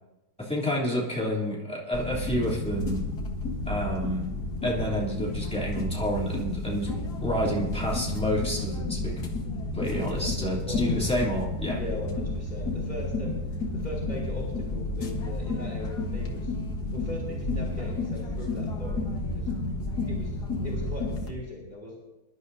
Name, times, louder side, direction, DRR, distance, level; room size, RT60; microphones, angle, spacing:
voice 1, 0.4-3.0 3.7-4.3 4.6-6.9 7.2-9.3 9.7-11.8, equal, 5° left, -5 dB, 2.9 m, -29 dB
sound 1, 1.9-21.3, left 2 dB, 75° left, 2.0 m, -31 dB
voice 2, 9.9-10.3 10.6-11.0 11.3-13.4 13.7-16.5 16.9-19.1 19.3-19.5 20.1-20.4 20.6-21.9, left 1 dB, 25° left, -3 dB, 2.8 m, -39 dB
24.0 x 12.0 x 2.7 m, 1.0 s
omnidirectional pair, 1.7 m